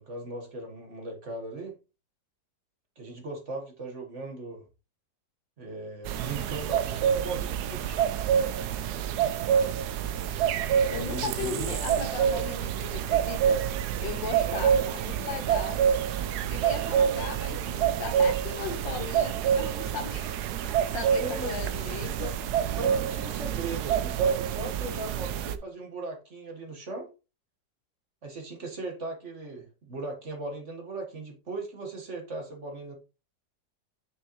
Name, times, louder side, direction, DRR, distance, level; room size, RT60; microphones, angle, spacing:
voice 1, 0.0-1.7 3.0-4.6 5.6-8.0 10.9-11.7 14.4-14.7 21.2-21.6 22.2-22.3 22.7-27.1 28.2-32.9, right 2 dB, 40° right, 1.8 m, -38 dB
sound 1, 6.1-25.6, right 8 dB, 70° right, 1.1 m, -27 dB
voice 2, 10.9-13.6 14.0-15.8 16.5-20.3 20.9-22.3, left 6 dB, 85° left, 2.0 m, -37 dB
6.6 x 6.5 x 3.1 m
omnidirectional pair, 1.9 m